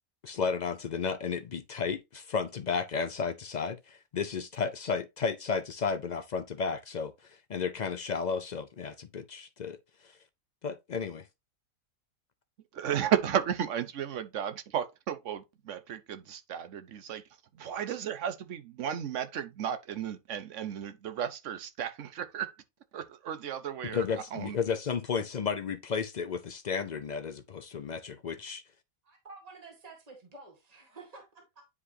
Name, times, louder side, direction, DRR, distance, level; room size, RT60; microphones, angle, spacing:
voice 1, 0.2-9.8 10.0-10.1 10.6-11.3 23.8-28.6, left 5 dB, 65° left, 0.4 m, -33 dB
voice 2, 12.7-17.2 17.6-22.5 22.9-24.0 24.3-24.6, right 9 dB, 60° right, 1.1 m, -34 dB
voice 3, 29.0-31.7, right 3 dB, 25° right, 1.9 m, -50 dB
9.8 x 4.9 x 2.7 m
omnidirectional pair, 1.5 m